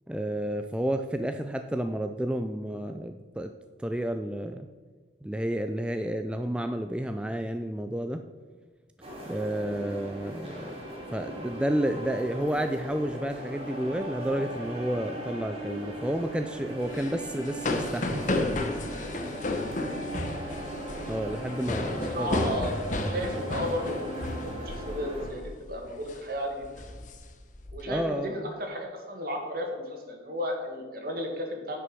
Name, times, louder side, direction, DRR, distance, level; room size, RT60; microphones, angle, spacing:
voice 1, 0.1-3.5 3.8-4.7 5.2-8.2 9.3-10.7 11.1-18.6 21.1-22.6 27.9-28.5, right 1 dB, 5° right, 6 dB, 0.3 m, -31 dB
sound 1, 9.0-25.3, right 1 dB, 30° right, 2.5 m, -38 dB
sound 2, 16.9-24.9 25.2-25.5 25.9-26.2 26.6-27.8, left 2 dB, 45° left, 1.0 m, -32 dB
voice 2, 21.8-22.8 23.1-26.7 27.7-31.8, equal, 55° right, 2 dB, 1.9 m, -34 dB
9.5 x 6.1 x 6.1 m, 1.4 s
head